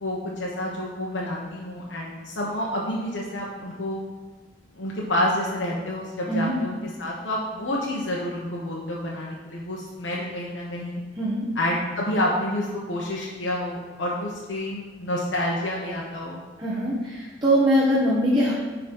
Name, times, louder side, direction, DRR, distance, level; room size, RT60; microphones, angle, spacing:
voice 1, 0.0-4.0 4.7-11.0 11.5-16.4, left 1 dB, 75° left, -4 dB, 1.2 m, -29 dB
voice 2, 11.2-11.5 16.6-18.5, equal, 25° right, -9 dB, 1.4 m, -22 dB
10.5 x 4.1 x 5.5 m, 1.3 s
head